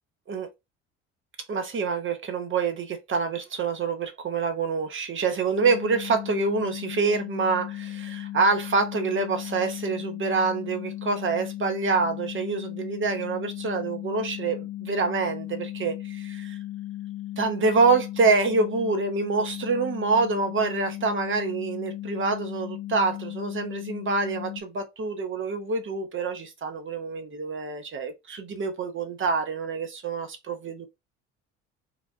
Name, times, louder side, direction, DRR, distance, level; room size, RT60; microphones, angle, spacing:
voice 1, 1.5-16.6 17.4-30.9, right 4 dB, 35° right, 0.9 m, -26 dB
sound 1, 5.6-24.6, left 14 dB, 50° left, 0.7 m, -36 dB
3.3 x 2.3 x 2.5 m
hypercardioid pair, 60°, 35 cm